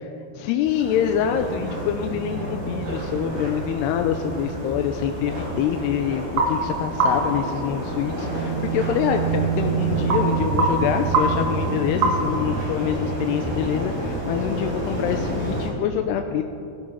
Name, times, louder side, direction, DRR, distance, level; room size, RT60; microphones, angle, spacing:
voice 1, 0.3-16.4, left 9 dB, 85° left, 5 dB, 2.7 m, -25 dB
sound 1, 0.6-15.7, equal, 65° right, 6.2 m, -30 dB
sound 2, 0.9-12.5, right 2 dB, 50° right, 2.4 m, -29 dB
sound 3, 1.2-6.7 6.9-7.1 8.3-14.8, right 11 dB, 85° right, 2.7 m, -31 dB
19.5 x 13.0 x 5.6 m, 2.7 s
omnidirectional pair, 4.8 m